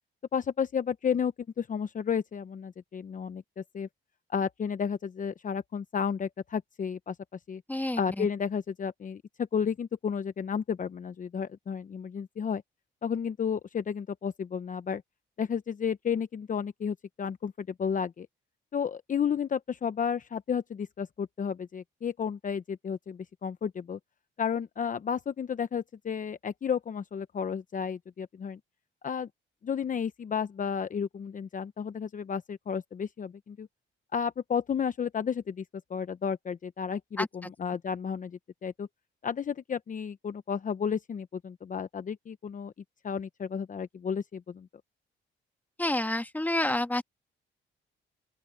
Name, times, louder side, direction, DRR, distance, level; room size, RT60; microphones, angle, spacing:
voice 1, 0.3-3.9 4.3-7.1 7.5-7.6 8.0-9.2 9.5-12.6 13.0-15.0 15.4-18.3 18.7-24.0 24.4-28.6 29.0-29.3 29.6-33.7 34.1-35.6 35.9-38.9 39.2-42.7 43.0-44.7, left 7 dB, 40° left, 0.9 m, -32 dB
voice 2, 7.7-8.3 37.2-37.5 45.8-47.0, left 1 dB, 10° left, 1.8 m, -29 dB
open air
cardioid pair, 90°, 20 cm